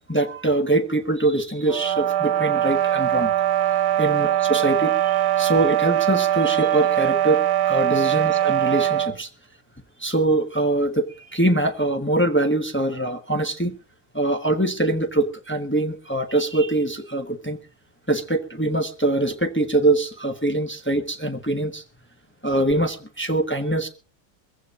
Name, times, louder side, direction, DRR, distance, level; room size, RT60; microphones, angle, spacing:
voice 1, 0.1-3.3 4.0-7.4 7.7-9.3 10.0-13.8 14.1-17.6 18.1-21.8 22.4-23.9, right 2 dB, 15° left, 0.5 m, -23 dB
sound 1, 1.7-9.2, right 12 dB, 75° right, 1.7 m, -21 dB
23.5 x 15.5 x 2.5 m
omnidirectional pair, 2.2 m